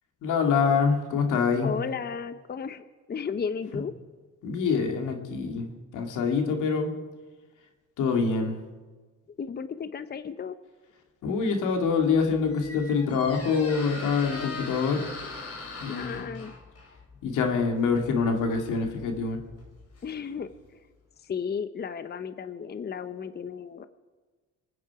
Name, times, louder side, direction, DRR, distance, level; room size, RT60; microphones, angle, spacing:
voice 1, 0.2-1.7 4.4-6.9 8.0-8.6 11.2-15.0 15.8-16.2 17.2-19.4, left 5 dB, 85° left, 3 dB, 2.4 m, -25 dB
voice 2, 1.6-3.9 9.4-10.6 15.9-16.5 20.0-20.8 21.2-23.8, left 6 dB, 35° left, 11 dB, 0.8 m, -34 dB
Squeak, 11.9-20.6, left 3 dB, 55° left, 4.3 m, -42 dB
25.5 x 9.6 x 4.8 m, 1.4 s
cardioid pair, 90°, 30 cm